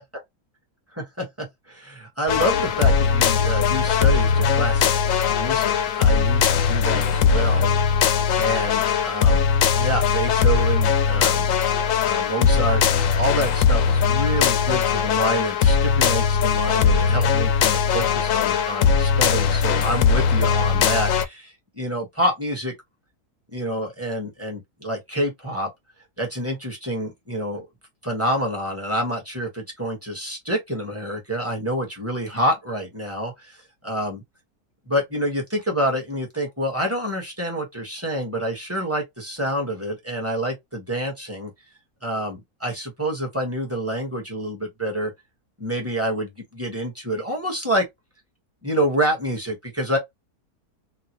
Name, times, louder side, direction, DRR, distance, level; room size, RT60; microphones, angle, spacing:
voice 1, 0.9-4.9 5.2-9.5 9.8-11.5 12.0-22.7 23.5-25.7 26.2-27.7 28.0-33.6 33.8-34.2 34.9-41.5 42.0-45.1 45.6-47.8 48.6-50.0, equal, 10° right, 1.1 m, -27 dB
sound 1, 2.3-21.2, left 6 dB, 70° left, 0.8 m, -20 dB
3.1 x 2.4 x 2.8 m
omnidirectional pair, 1.7 m